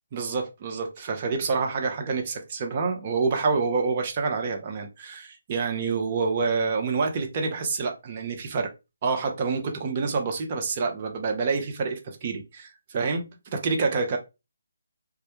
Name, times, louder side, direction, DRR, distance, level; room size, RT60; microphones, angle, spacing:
voice 1, 0.1-8.7 9.0-14.2, right 4 dB, 35° right, 0.6 m, -27 dB
2.3 x 2.1 x 2.9 m
figure-of-eight pair, 150°, 0 cm